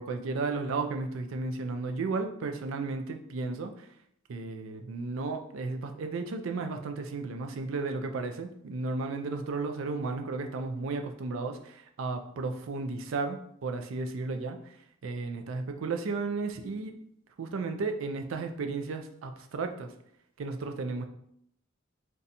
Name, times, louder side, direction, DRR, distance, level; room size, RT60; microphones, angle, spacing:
voice 1, 0.0-3.7 4.3-14.6 15.0-16.9 17.4-19.9 20.4-21.0, right 3 dB, 70° right, 6 dB, 0.4 m, -34 dB
2.6 x 2.3 x 4.0 m, 0.71 s
head